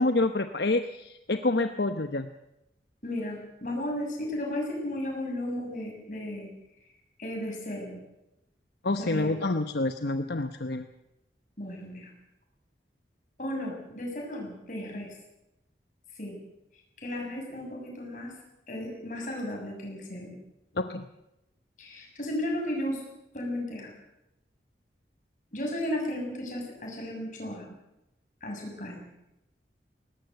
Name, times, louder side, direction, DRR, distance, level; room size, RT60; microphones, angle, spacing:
voice 1, 0.0-2.3 8.8-10.9 20.8-21.1, left 2 dB, 70° left, 8 dB, 0.9 m, -27 dB
voice 2, 3.0-6.5 6.8-6.9 7.2-8.0 9.0-9.3 11.6-12.1 13.4-15.1 16.2-16.4 17.0-18.3 18.7-20.4 21.8-23.0 23.3-23.9 25.5-27.8 28.4-29.1, left 1 dB, 45° left, 1 dB, 7.1 m, -34 dB
20.0 x 18.5 x 8.0 m, 0.89 s
head